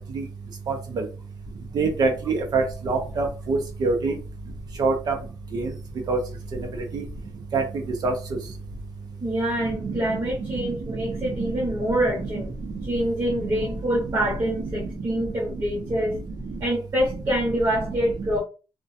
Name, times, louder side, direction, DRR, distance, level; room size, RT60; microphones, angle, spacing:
voice 1, 0.7-1.0 1.7-4.2 4.8-5.1 5.5-5.7 6.1-6.2 6.9-7.0 7.5-7.6 8.0-8.1 9.8-10.0, right 4 dB, 50° right, 2 dB, 0.6 m, -24 dB
voice 2, 9.2-12.6 12.8-16.1 16.6-18.4, equal, 35° right, -5 dB, 0.9 m, -26 dB
2.5 x 2.2 x 2.6 m, 0.33 s
wide cardioid pair, 180°, 9 cm